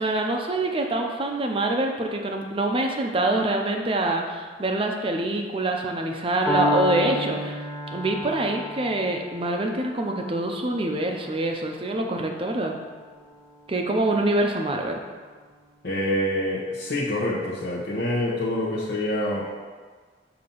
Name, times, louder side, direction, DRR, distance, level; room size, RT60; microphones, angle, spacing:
voice 1, 0.0-7.6 7.9-12.8 13.7-15.0, right 2 dB, 30° right, 2 dB, 0.6 m, -25 dB
Piano, 6.5-14.4, left 1 dB, 10° right, 1.1 m, -32 dB
voice 2, 15.8-19.5, left 1 dB, 65° left, -8 dB, 0.9 m, -26 dB
6.7 x 2.9 x 5.4 m, 1.5 s
head